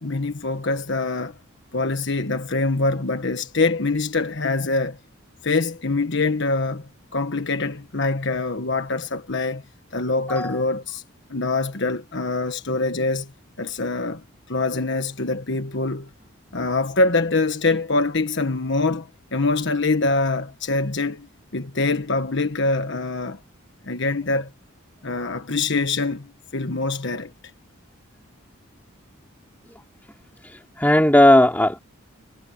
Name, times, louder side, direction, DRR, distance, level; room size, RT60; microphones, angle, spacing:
voice 1, 0.0-1.4 1.7-5.0 5.4-9.6 9.9-11.0 11.3-13.3 13.6-16.1 16.5-23.4 23.8-24.5 25.0-27.3, left 3 dB, 55° left, 1.4 m, -24 dB
voice 2, 30.4-31.8, left 1 dB, 10° left, 3.4 m, -16 dB
head